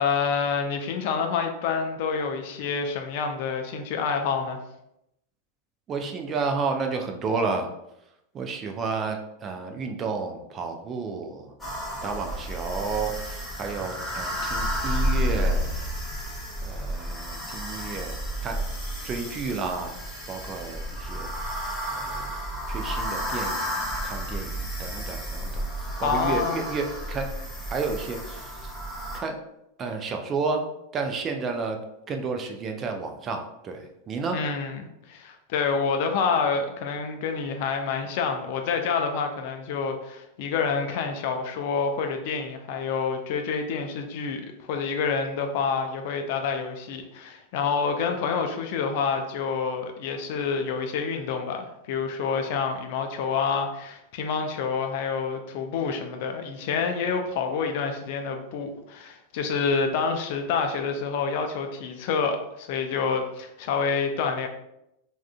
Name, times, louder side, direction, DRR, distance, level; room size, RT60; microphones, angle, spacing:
voice 1, 0.0-4.6 26.0-26.7 34.3-64.5, left 5 dB, 50° left, 5 dB, 0.4 m, -28 dB
voice 2, 5.9-7.7 8.3-11.5 12.0-15.8 16.6-18.1 18.4-18.6 19.0-20.0 20.3-22.3 22.7-25.7 26.0-27.3 27.7-28.5 29.1-29.4 29.8-30.7 30.9-31.8 32.1-34.4, right 4 dB, 25° right, 4 dB, 0.4 m, -31 dB
sound 1, 11.6-29.2, equal, 10° left, 0.8 m, -31 dB
3.5 x 2.2 x 2.3 m, 0.84 s
figure-of-eight pair, 90°, 0 cm